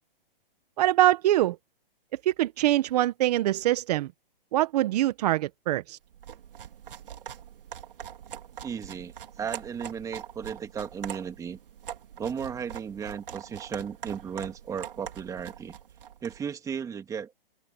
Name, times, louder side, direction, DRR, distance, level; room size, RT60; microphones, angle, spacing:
voice 1, 0.8-1.6 2.1-4.1 4.5-6.0, right 14 dB, 45° right, 1.4 m, -24 dB
sound 1, 6.1-16.4, right 9 dB, 70° right, 4.8 m, -43 dB
voice 2, 8.6-11.6 12.2-15.8 16.2-17.3, right 7 dB, 10° right, 2.1 m, -35 dB
open air
hypercardioid pair, 150°, 29 cm